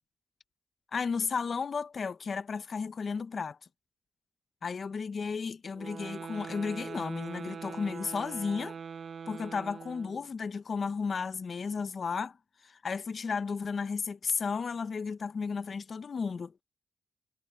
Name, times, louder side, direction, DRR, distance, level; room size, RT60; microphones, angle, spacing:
voice 1, 0.9-3.6 4.6-8.7 9.3-12.4 12.6-16.5, left 5 dB, 50° left, 0.9 m, -33 dB
sound 1, 5.7-10.3, right 6 dB, 60° right, 0.5 m, -42 dB
cardioid pair, 85°, 0 cm